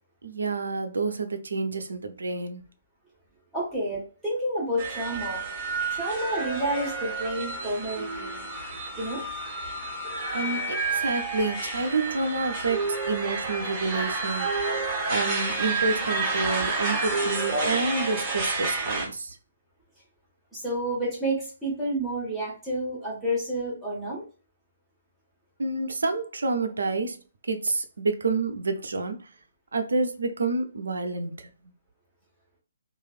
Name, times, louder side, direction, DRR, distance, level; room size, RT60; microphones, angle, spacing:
voice 1, 0.2-2.6 10.3-14.8 15.1-19.4 25.6-29.3 29.7-31.5, right 3 dB, 60° right, 0.5 m, -29 dB
voice 2, 3.5-5.4 5.9-8.5 8.9-9.2 20.5-24.2, right 1 dB, ahead, 1.4 m, -30 dB
sound 1, 4.8-19.1, right 3 dB, 20° right, 0.9 m, -30 dB
3.1 x 2.4 x 2.4 m
figure-of-eight pair, 135°, 0 cm